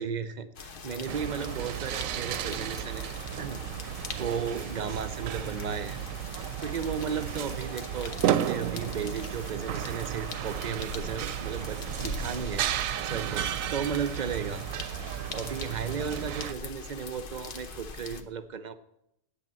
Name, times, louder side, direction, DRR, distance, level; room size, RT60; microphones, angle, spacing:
voice 1, 0.0-3.1 3.4-3.6 4.2-6.0 6.3-12.7 13.0-14.6 15.3-18.8, right 6 dB, 55° right, 12 dB, 0.5 m, -35 dB
sound 1, 0.6-18.2, left 4 dB, 50° left, 0.9 m, -43 dB
sound 2, 1.1-16.5, right 11 dB, 85° right, 1.0 m, -33 dB
8.6 x 8.2 x 7.4 m, 0.84 s
omnidirectional pair, 1.4 m